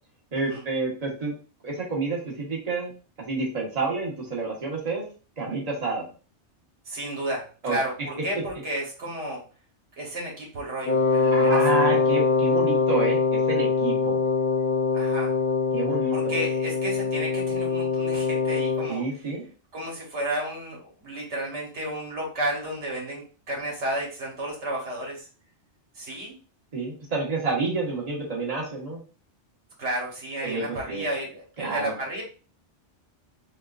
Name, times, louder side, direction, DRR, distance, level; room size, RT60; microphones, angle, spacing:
voice 1, 0.3-1.3 1.6-2.9 3.3-5.0 5.4-6.1 7.6-7.8 11.3-14.2 15.7-16.4 18.9-19.4 26.7-29.0 30.4-31.1 31.6-31.9, right 3 dB, 35° right, -3 dB, 1.2 m, -29 dB
voice 2, 6.8-9.4 10.0-11.8 14.9-15.3 16.1-19.0 19.7-25.3 25.9-26.4 29.8-32.2, right 1 dB, 75° right, -2 dB, 1.5 m, -32 dB
Wind instrument woodwind instrument, 10.9-18.9, left 4 dB, 60° left, 0.5 m, -23 dB
3.6 x 3.1 x 2.4 m, 0.36 s
omnidirectional pair, 1.2 m